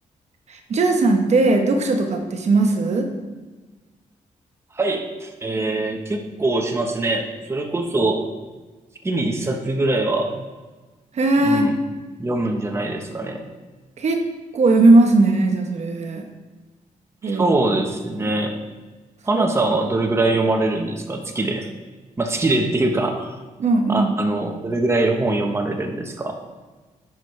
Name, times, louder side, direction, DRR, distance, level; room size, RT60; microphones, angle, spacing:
voice 1, 0.5-3.1 11.1-11.7 14.0-14.2 14.5-16.3 17.2-17.6 18.2-18.3 19.3-19.4 23.6-24.2, right 2 dB, 55° right, 4 dB, 0.9 m, -18 dB
voice 2, 4.7-8.3 9.0-10.3 11.4-11.7 12.2-13.4 17.2-18.6 19.2-21.7 22.2-23.3 23.9-26.3, right 2 dB, 20° right, 3 dB, 0.9 m, -23 dB
10.0 x 6.1 x 3.2 m, 1.3 s
wide cardioid pair, 125°, 14 cm